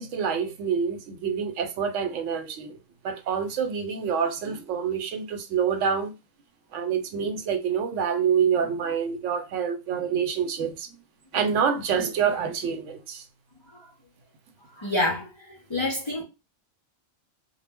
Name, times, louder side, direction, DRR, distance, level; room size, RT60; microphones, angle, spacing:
voice 1, 0.0-2.8 3.0-6.1 6.7-10.9 11.3-13.2, right 7 dB, 80° right, 0.9 m, -27 dB
voice 2, 14.8-16.2, left 2 dB, 40° left, 0.4 m, -28 dB
2.1 x 2.0 x 3.4 m
omnidirectional pair, 1.2 m